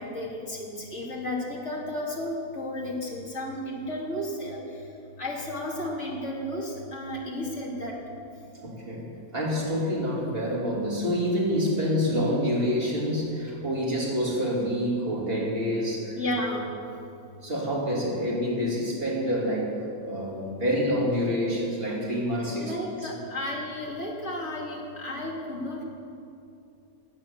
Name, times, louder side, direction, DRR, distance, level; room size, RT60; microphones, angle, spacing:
voice 1, 0.0-4.6 5.2-7.9 16.2-16.8 22.6-25.8, left 1 dB, 45° left, -3 dB, 3.2 m, -33 dB
voice 2, 8.6-9.1 9.3-16.2 17.4-19.8 20.0-22.7 23.0-23.1, equal, 35° right, -4 dB, 3.4 m, -27 dB
17.5 x 9.8 x 7.5 m, 2.7 s
omnidirectional pair, 1.7 m